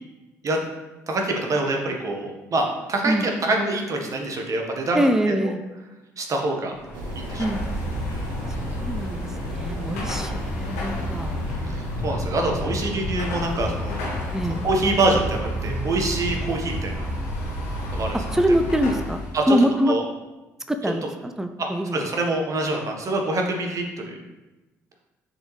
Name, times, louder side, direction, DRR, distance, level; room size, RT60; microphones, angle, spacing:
voice 1, 1.1-3.1 3.4-5.3 6.2-6.7 7.1-7.4 8.1-8.3 11.7-14.0 14.6-17.1 17.9-18.2 19.3-19.5 19.9-20.0 21.9-24.2, right 2 dB, 45° right, 1 dB, 1.4 m, -25 dB
voice 2, 4.9-5.6 7.4-7.7 8.5-11.5 12.6-12.8 14.3-14.7 18.3-20.0 20.7-22.1, equal, 5° right, 8 dB, 0.5 m, -24 dB
Car passing by / Traffic noise roadway noise / Engine, 6.7-19.4, equal, 80° left, 1.4 m, -30 dB
sound 1, 6.9-12.1, right 1 dB, 70° right, 0.8 m, -34 dB
6.8 x 4.2 x 3.3 m, 1.1 s
hypercardioid pair, 50°, 8 cm